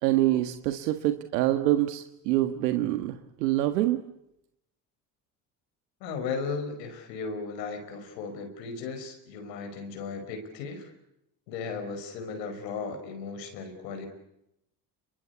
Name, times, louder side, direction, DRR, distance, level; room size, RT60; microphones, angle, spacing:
voice 1, 0.0-4.0, right 15 dB, 85° right, 8 dB, 1.7 m, -25 dB
voice 2, 6.0-10.9 11.5-14.1, left 4 dB, 85° left, 5 dB, 5.5 m, -36 dB
27.5 x 23.5 x 8.3 m, 0.82 s
hypercardioid pair, 75°, 48 cm